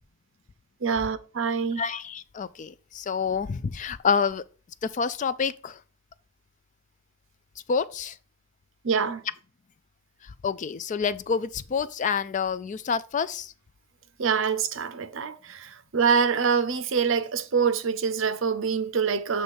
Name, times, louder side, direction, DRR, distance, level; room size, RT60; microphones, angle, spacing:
voice 1, 0.8-1.8 8.8-9.2 14.2-19.4, right 6 dB, 65° right, 0.6 m, -25 dB
voice 2, 1.8-4.4 4.8-5.8 7.7-8.2 10.2-13.5, left 6 dB, 35° left, 0.3 m, -28 dB
7.8 x 3.2 x 5.3 m
head